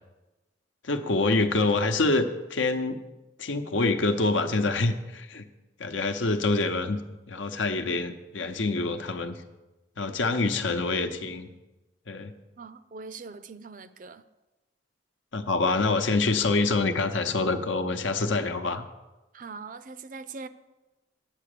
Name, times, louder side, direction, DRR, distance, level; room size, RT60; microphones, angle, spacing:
voice 1, 0.8-3.0 3.4-5.5 5.8-7.0 7.3-9.4 10.0-11.5 12.1-12.3 15.3-18.8, left 3 dB, 90° left, 0.9 m, -26 dB
voice 2, 12.6-14.2 19.3-20.5, right 4 dB, 45° right, 0.5 m, -41 dB
8.8 x 8.3 x 6.7 m
head